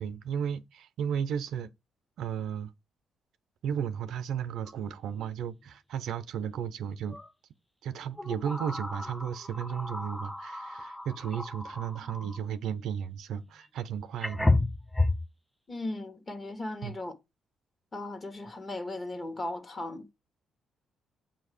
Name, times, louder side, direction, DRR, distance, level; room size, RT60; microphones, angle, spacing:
voice 1, 0.0-1.7 2.2-2.7 3.6-7.2 7.8-14.5 16.8-16.9, right 8 dB, 75° right, 0.5 m, -34 dB
sound 1, 4.6-4.7 5.1-5.3 7.1-7.3 8.1-12.4 13.6-13.7 14.2-15.3, left 2 dB, 5° left, 0.3 m, -32 dB
voice 2, 15.7-17.1 17.9-20.1, left 2 dB, 30° left, 1.3 m, -37 dB
7.4 x 2.8 x 4.9 m
cardioid pair, 90°, 0 cm